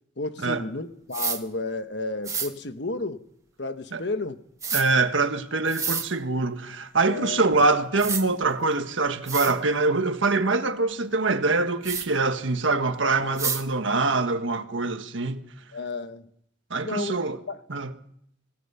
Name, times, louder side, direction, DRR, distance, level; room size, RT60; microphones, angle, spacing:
voice 1, 0.2-3.2 3.6-4.4 7.1-7.4 13.0-13.4 15.7-16.3 16.8-17.2 17.5-17.6, left 3 dB, 60° left, 1.2 m, -32 dB
deo spray, 1.1-1.4 2.2-2.5 4.6-4.8 5.7-6.1 7.5-7.6 8.0-8.2 8.9-9.0 9.3-9.5 11.8-12.1 13.4-13.6, right 6 dB, 15° right, 1.4 m, -28 dB
voice 2, 4.7-15.5 16.7-17.4 17.7-17.9, right 3 dB, 75° right, 1.5 m, -24 dB
26.5 x 17.5 x 5.7 m
head